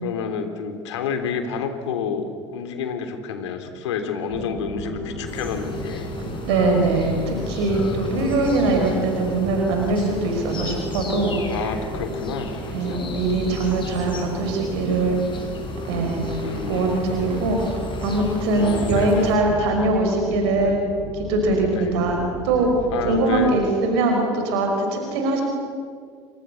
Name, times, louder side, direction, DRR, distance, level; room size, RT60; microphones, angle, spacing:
voice 1, 0.0-6.1 7.7-8.4 11.5-13.0 14.1-14.3 16.4-16.9 18.6-19.3 21.7-21.9 22.9-23.6, left 6 dB, 75° left, 7 dB, 3.3 m, -29 dB
sound 1, 4.3-23.7, right 1 dB, 45° right, 7.2 m, -33 dB
sound 2, 5.3-19.4, left 3 dB, 35° left, 6.7 m, -34 dB
voice 2, 6.5-11.3 12.7-15.2 15.9-16.3 16.7-17.6 18.0-20.8 21.1-22.2 22.4-22.7 23.0-25.4, right 2 dB, 65° right, 3 dB, 5.4 m, -22 dB
29.0 x 26.0 x 7.0 m, 2.1 s
figure-of-eight pair, 65°, 15 cm